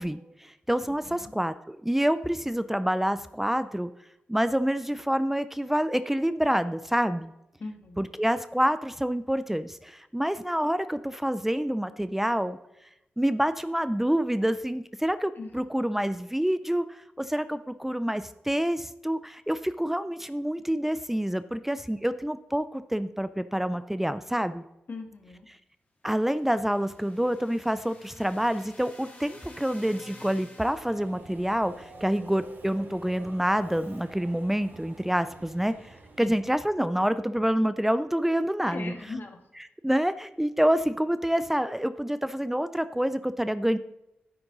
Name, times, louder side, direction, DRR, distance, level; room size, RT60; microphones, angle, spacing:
voice 1, 0.0-3.9 4.3-7.3 8.0-12.6 13.2-24.6 26.0-38.9 39.8-43.8, equal, 5° right, 12 dB, 0.4 m, -27 dB
voice 2, 0.9-1.3 7.6-8.1 15.4-15.6 24.9-25.5 36.2-36.4 38.7-39.4, left 3 dB, 55° left, 4 dB, 1.8 m, -39 dB
sound 1, 26.2-31.2, left 2 dB, 40° left, 2.9 m, -50 dB
Subway metro underground, 30.7-36.9, right 2 dB, 65° right, 2.6 m, -48 dB
10.5 x 8.6 x 4.0 m, 0.88 s
cardioid pair, 55°, 4 cm